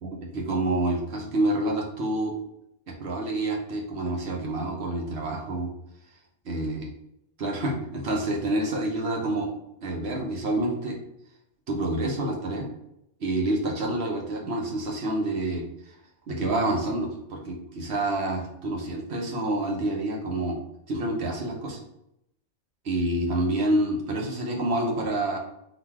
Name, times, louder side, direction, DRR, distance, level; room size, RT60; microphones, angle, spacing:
voice 1, 0.0-2.3 2.9-5.7 6.4-6.8 7.4-9.5 9.8-11.0 11.7-12.7 13.2-15.6 16.3-20.6 20.9-21.8 22.8-25.4, right 1 dB, 70° right, 0 dB, 1.1 m, -28 dB
4.0 x 2.6 x 4.5 m, 0.80 s
omnidirectional pair, 1.2 m